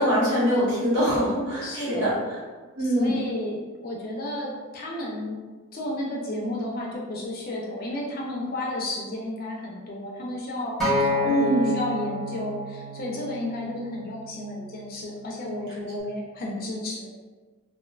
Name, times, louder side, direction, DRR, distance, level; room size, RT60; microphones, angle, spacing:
voice 1, 0.0-2.1 2.8-3.1 11.2-11.7, equal, 55° right, -9 dB, 1.0 m, -23 dB
voice 2, 1.6-2.2 2.8-5.4 5.7-17.1, left 1 dB, 40° left, -3 dB, 0.4 m, -32 dB
Acoustic guitar, 10.8-15.1 15.9-16.0, left 1 dB, ahead, 0.8 m, -30 dB
2.4 x 2.2 x 2.3 m, 1.3 s
head